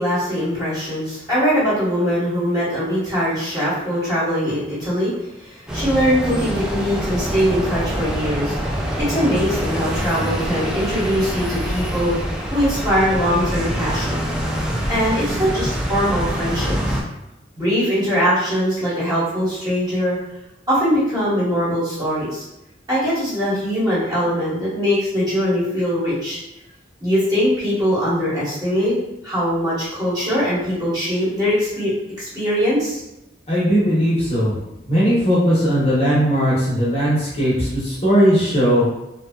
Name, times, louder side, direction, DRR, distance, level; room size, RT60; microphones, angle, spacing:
voice 1, 0.0-5.1 5.4-8.6 9.0-12.1 12.5-14.2 14.9-17.0 17.6-20.2 20.7-22.4 22.9-26.4 27.0-28.9 29.2-33.0, equal, 20° right, -10 dB, 1.2 m, -21 dB
sound 1, 5.7-17.0, equal, 5° right, 0.3 m, -25 dB
voice 2, 33.5-34.6 34.9-38.9, equal, 35° left, -7 dB, 0.8 m, -18 dB
2.6 x 2.2 x 2.3 m, 0.90 s
head